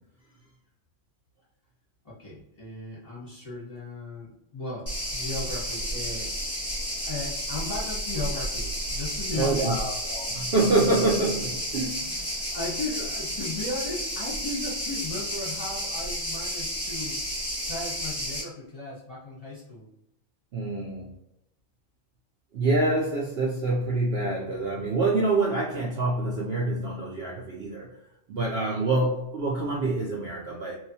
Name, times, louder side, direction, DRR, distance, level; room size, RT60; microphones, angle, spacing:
voice 1, 2.0-6.3 7.0-9.7 12.0-17.2 17.7-19.9, left 2 dB, 30° left, -7 dB, 1.1 m, -36 dB
sound 1, 4.9-18.4, equal, 10° left, 0.9 m, -32 dB
voice 2, 9.3-12.2 20.5-21.1 22.5-27.9 28.3-30.8, right 2 dB, 60° right, -4 dB, 0.7 m, -26 dB
2.9 x 2.3 x 2.7 m, 0.82 s
omnidirectional pair, 1.4 m